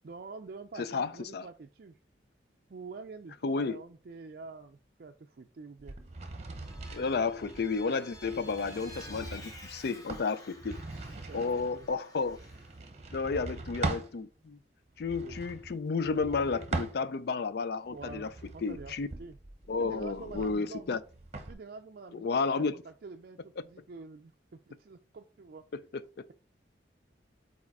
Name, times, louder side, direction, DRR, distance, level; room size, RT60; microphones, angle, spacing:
voice 1, 0.0-2.0 2.7-6.0 11.2-11.9 13.2-13.5 15.2-15.4 17.8-19.4 19.8-20.9 21.5-25.6, right 4 dB, 55° right, 0.4 m, -47 dB
voice 2, 0.8-1.5 3.4-3.8 6.9-10.8 11.3-12.4 13.1-14.6 15.0-18.3 18.6-19.1 19.7-21.0 22.1-22.7 25.7-26.0, left 4 dB, 60° left, 0.4 m, -32 dB
sound 1, 5.8-14.1 14.9-17.4 17.9-21.5, right 2 dB, 35° right, 0.9 m, -41 dB
Vehicle, 6.4-12.8, left 1 dB, 20° left, 1.1 m, -52 dB
4.9 x 4.2 x 4.6 m
head